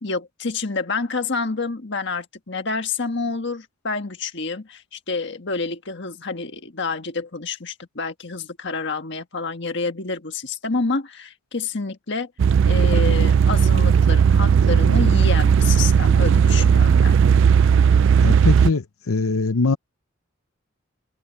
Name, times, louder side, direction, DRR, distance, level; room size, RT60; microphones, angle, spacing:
voice 1, 0.0-12.3 12.7-17.1, left 4 dB, 55° left, 1.6 m, -28 dB
sound 1, 12.4-18.7, right 7 dB, 60° right, 0.3 m, -16 dB
voice 2, 18.2-19.8, left 3 dB, 85° left, 0.8 m, -22 dB
head